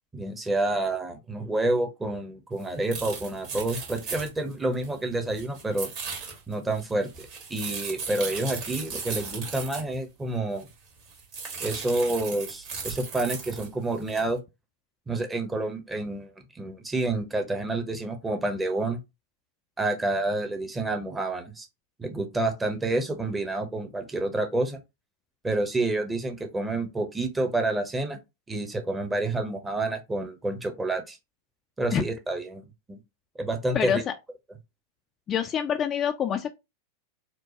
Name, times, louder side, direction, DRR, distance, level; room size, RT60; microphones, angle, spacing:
voice 1, 0.1-5.9 6.5-10.7 11.6-14.4 15.1-19.0 19.8-21.7 22.0-24.8 25.4-28.2 28.5-31.2 31.8-32.6 32.9-33.0 33.4-34.0, right 2 dB, 10° right, 0.8 m, -29 dB
sound 1, 2.6-2.7 2.9-5.0 5.3-10.0 10.6-10.7 11.0-13.7 14.1-14.3, right 5 dB, 45° right, 1.4 m, -37 dB
voice 2, 33.7-34.1 35.3-36.5, left 8 dB, 25° left, 0.4 m, -26 dB
4.5 x 2.2 x 2.8 m
figure-of-eight pair, 90°, 0 cm